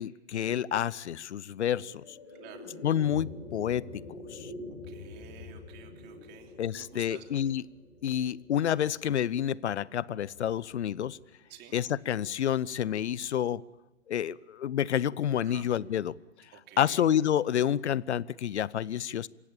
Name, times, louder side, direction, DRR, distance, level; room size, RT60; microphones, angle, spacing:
voice 1, 0.0-2.2 2.8-4.0 4.3-4.5 6.6-7.6 8.0-11.2 11.7-13.6 14.1-16.1 16.8-19.3, left 10 dB, 75° left, 23 dB, 0.7 m, -29 dB
sound 1, 1.4-11.9, left 2 dB, 55° left, 7.7 m, -47 dB
voice 2, 2.4-2.7 4.8-7.2 11.5-11.8 15.4-15.6 16.5-17.1, right 10 dB, 30° right, 4 dB, 3.1 m, -51 dB
27.0 x 16.0 x 8.8 m, 1.1 s
hypercardioid pair, 120°, 34 cm